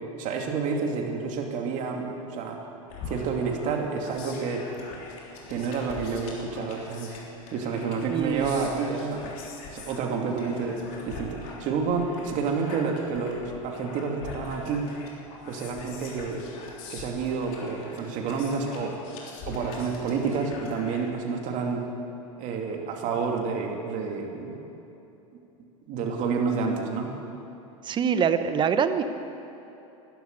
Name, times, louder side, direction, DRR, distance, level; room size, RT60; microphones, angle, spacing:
voice 1, 0.2-2.6 3.1-4.7 5.5-7.2 7.5-9.3 9.7-15.0 15.5-16.4 16.9-18.9 19.5-21.9 22.4-24.6 25.9-27.1, right 5 dB, 45° right, 2 dB, 2.6 m, -29 dB
sound 1, 2.9-21.1, left 4 dB, 55° left, 3.3 m, -43 dB
voice 2, 8.1-8.7 27.8-29.0, right 7 dB, 25° right, 10 dB, 0.9 m, -24 dB
12.5 x 12.0 x 9.5 m, 3.0 s
supercardioid pair, 115°, 17 cm